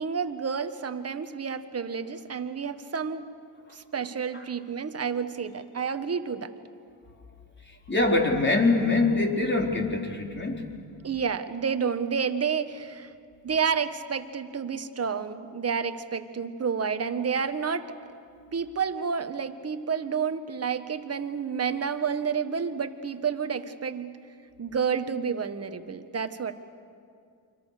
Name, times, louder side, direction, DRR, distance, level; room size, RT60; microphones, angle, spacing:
voice 1, 0.0-3.3 3.7-6.5 11.0-13.1 13.4-17.9 18.5-24.2 24.6-26.5, right 6 dB, 30° right, 9 dB, 1.6 m, -30 dB
voice 2, 7.7-10.7, left 3 dB, 25° left, 1 dB, 4.2 m, -24 dB
29.0 x 25.0 x 6.8 m, 2.4 s
supercardioid pair, 85°, 46 cm